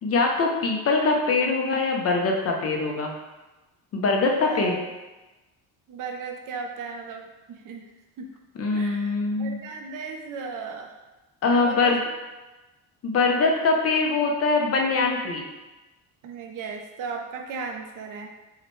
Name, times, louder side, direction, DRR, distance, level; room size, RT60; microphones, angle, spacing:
voice 1, 0.0-3.1 3.9-4.7 8.6-9.6 11.4-12.0 13.0-15.5, left 3 dB, 40° left, 1 dB, 0.5 m, -23 dB
voice 2, 4.4-4.8 5.9-7.9 8.2-8.3 8.7-11.0 11.5-11.9 16.2-18.3, right 5 dB, 55° right, 3 dB, 0.5 m, -36 dB
5.6 x 2.2 x 3.0 m, 1.1 s
cardioid pair, 165°, 38 cm